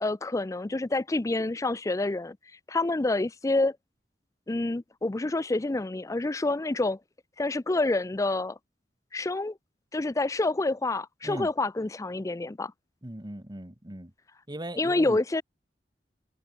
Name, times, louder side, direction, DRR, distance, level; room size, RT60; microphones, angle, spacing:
voice 1, 0.0-2.4 2.7-3.8 4.5-7.0 7.4-8.6 9.1-9.6 9.9-12.7 14.8-15.4, left 2 dB, 20° left, 0.4 m, -27 dB
voice 2, 13.0-14.1 14.5-15.2, right 1 dB, 25° right, 1.9 m, -38 dB
head